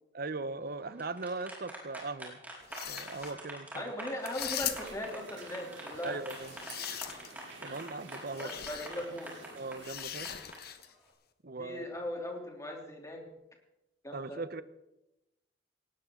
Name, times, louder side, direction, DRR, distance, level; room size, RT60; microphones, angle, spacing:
voice 1, 0.1-2.4 2.9-3.9 6.0-6.5 7.6-8.5 9.5-10.4 11.4-11.9 14.1-14.6, right 3 dB, 55° right, 14 dB, 0.9 m, -39 dB
sound 1, 0.8-10.6, right 1 dB, 10° right, 4.9 m, -45 dB
sound 2, 2.6-3.3 4.2-5.1 6.3-7.4 8.3-8.9 9.8-10.9, left 10 dB, 55° left, 1.3 m, -40 dB
voice 2, 3.7-6.2 8.4-9.3 11.6-13.2 14.0-14.4, left 1 dB, 15° left, 1 dB, 3.1 m, -39 dB
sound 3, 4.7-9.9, right 4 dB, 80° right, 3.2 m, -51 dB
19.5 x 18.0 x 3.8 m, 0.94 s
head